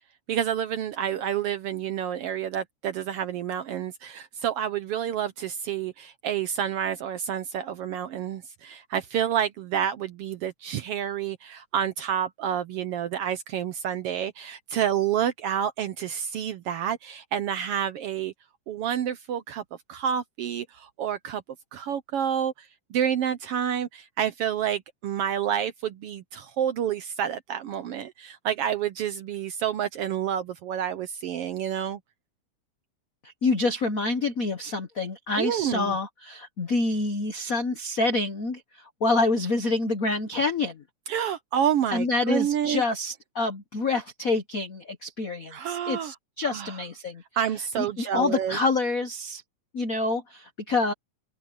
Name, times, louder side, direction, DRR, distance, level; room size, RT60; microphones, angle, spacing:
voice 1, 0.3-18.3 18.7-19.6 19.9-21.4 21.7-22.5 22.9-32.0 35.4-36.0 41.1-42.8 45.5-46.1 46.4-46.8 47.4-48.6, right 9 dB, 70° right, 1.5 m, -29 dB
voice 2, 33.2-40.8 41.9-47.2 47.8-49.4 49.7-50.9, left 3 dB, 65° left, 0.8 m, -27 dB
open air
omnidirectional pair, 3.4 m